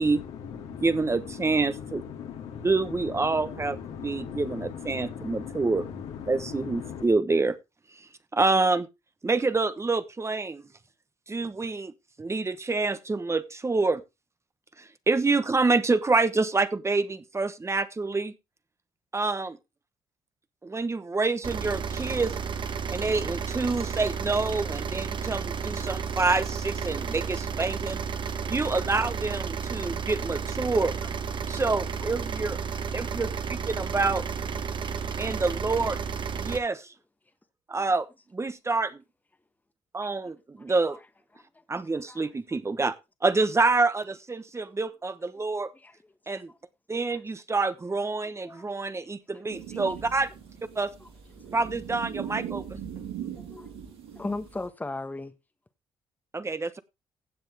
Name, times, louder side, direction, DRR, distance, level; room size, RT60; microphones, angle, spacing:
voice 1, 0.0-7.0, left 7 dB, 75° left, 3.0 m, -39 dB
voice 2, 0.8-2.0 2.6-5.9 6.3-7.6 8.3-8.9 9.2-10.6 11.3-11.9 12.2-14.0 14.8-18.3 19.1-19.6 20.6-22.4 22.9-28.0 28.5-30.9 31.5-32.6 32.9-34.2 35.2-36.0 36.3-36.9 37.7-38.1 38.3-39.0 39.9-41.0 41.7-42.9 43.2-45.7 46.3-46.5 46.9-50.3 50.7-50.9 51.5-52.8 56.3-56.8, right 3 dB, 25° right, 1.1 m, -27 dB
sound 1, 21.4-36.6, right 6 dB, 45° right, 1.4 m, -32 dB
sound 2, 49.5-54.7, right 9 dB, 90° right, 7.8 m, -39 dB
voice 3, 53.4-53.7 54.1-55.4, left 2 dB, 15° left, 1.3 m, -38 dB
16.0 x 7.7 x 3.4 m
supercardioid pair, 55°, 11 cm